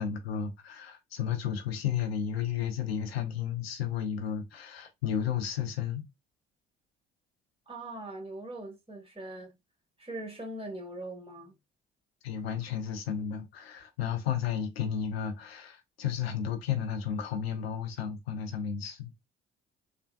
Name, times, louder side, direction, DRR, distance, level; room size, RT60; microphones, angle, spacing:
voice 1, 0.0-6.0 12.2-19.1, left 8 dB, 90° left, 0.5 m, -33 dB
voice 2, 7.7-9.5 10.0-11.5, right 1 dB, 20° right, 1.5 m, -41 dB
3.4 x 2.2 x 2.3 m
hypercardioid pair, 50°, 30 cm